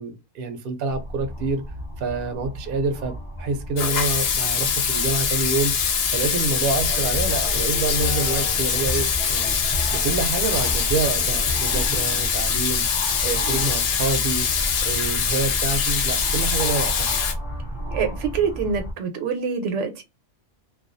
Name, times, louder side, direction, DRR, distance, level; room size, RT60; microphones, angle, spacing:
voice 1, 0.0-1.6 2.0-9.6 9.9-12.9 13.2-14.5 14.8-17.2, right 4 dB, 60° right, 0.7 m, -27 dB
sound 1, 0.9-18.9, equal, 30° left, 0.8 m, -32 dB
Water tap faucet / Sink (filling or washing), 3.8-17.3, left 7 dB, 65° left, 0.8 m, -24 dB
sound 2, 6.7-12.4, left 3 dB, 50° left, 0.3 m, -34 dB
voice 2, 17.9-20.0, right 6 dB, 80° right, 1.0 m, -25 dB
2.3 x 2.3 x 2.5 m
omnidirectional pair, 1.2 m